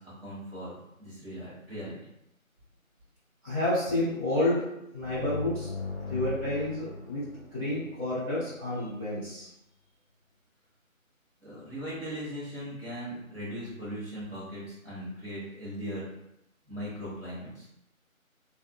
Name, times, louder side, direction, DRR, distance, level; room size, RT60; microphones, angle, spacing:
voice 1, 0.0-2.0 11.4-16.1 16.7-17.7, equal, 45° right, -10 dB, 1.2 m, -39 dB
voice 2, 3.4-4.6 4.9-5.7 6.1-7.2 7.5-9.5, left 1 dB, 25° right, -17 dB, 1.0 m, -29 dB
sound 1, 5.0-8.6, left 4 dB, 50° left, 0.6 m, -39 dB
2.5 x 2.3 x 2.3 m, 0.82 s
figure-of-eight pair, 170°, 42 cm